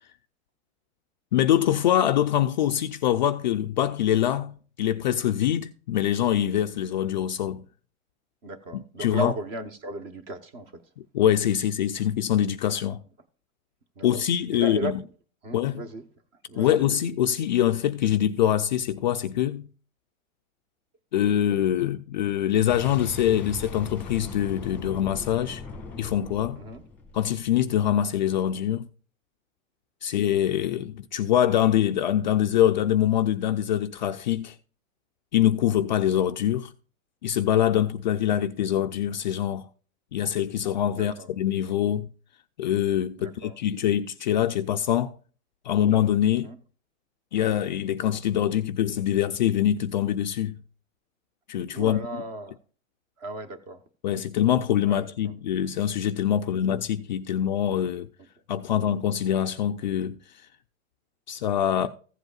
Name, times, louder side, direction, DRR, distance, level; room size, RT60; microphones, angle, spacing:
voice 1, 1.3-7.6 8.7-9.3 11.1-13.0 14.0-15.0 15.5-15.8 16.6-19.7 21.1-25.6 26.0-26.6 27.1-28.9 30.0-34.6 35.3-36.7 37.2-39.7 40.1-42.1 42.6-45.2 45.6-46.5 47.3-50.6 51.5-52.0 54.0-58.1 58.5-60.2 61.3-61.9, left 10 dB, 35° left, 0.4 m, -24 dB
voice 2, 8.4-10.8 14.0-14.2 14.5-15.0 15.4-16.0 16.5-16.8 26.5-26.8 40.9-41.3 43.2-43.6 46.3-46.6 51.7-52.6 53.2-53.8 54.9-55.1 56.4-56.5 61.8-61.9, right 2 dB, 25° right, 0.9 m, -35 dB
Boom, 22.7-27.6, left 4 dB, 5° left, 1.4 m, -39 dB
15.5 x 7.9 x 2.3 m
supercardioid pair, 165°, 40 cm